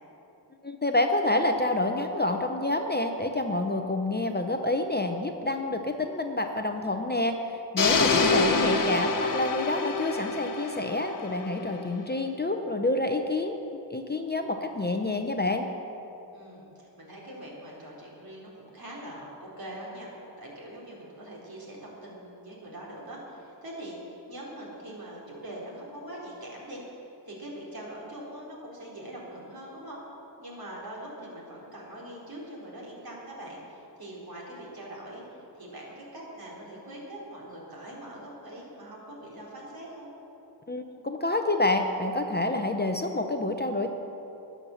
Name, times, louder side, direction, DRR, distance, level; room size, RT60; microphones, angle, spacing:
voice 1, 0.6-13.6 13.9-15.7 40.7-43.9, left 2 dB, 25° left, 5 dB, 0.7 m, -28 dB
sound 1, 7.8-11.8, left 3 dB, 45° left, 1.1 m, -26 dB
voice 2, 16.3-20.1 20.4-30.0 30.4-40.1, right 1 dB, 55° right, -4 dB, 3.9 m, -43 dB
20.0 x 7.3 x 7.0 m, 3.0 s
wide cardioid pair, 145°, 44 cm